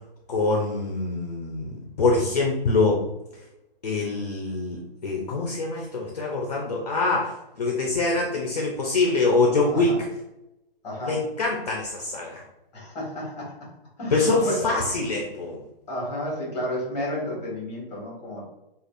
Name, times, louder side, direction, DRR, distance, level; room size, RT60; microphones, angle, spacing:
voice 1, 0.3-3.0 3.8-9.9 11.0-12.4 14.1-15.6, left 3 dB, 45° left, -1 dB, 0.5 m, -24 dB
voice 2, 10.8-11.2 12.7-13.6 14.0-14.7 15.9-18.5, left 1 dB, 10° left, -5 dB, 1.2 m, -31 dB
5.0 x 2.4 x 2.4 m, 0.93 s
hypercardioid pair, 175°, 29 cm